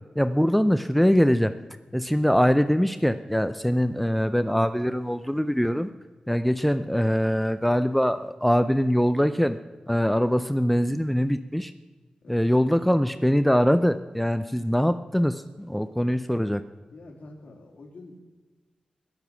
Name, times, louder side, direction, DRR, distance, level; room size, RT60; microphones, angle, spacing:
voice 1, 0.2-1.5 1.9-5.9 6.3-9.6 9.9-11.7 12.3-16.6, equal, 5° left, 11 dB, 0.5 m, -23 dB
voice 2, 12.2-12.8 16.9-18.2, left 2 dB, 65° left, 1 dB, 3.0 m, -47 dB
21.0 x 7.1 x 6.0 m, 1.3 s
wide cardioid pair, 100°, 3 cm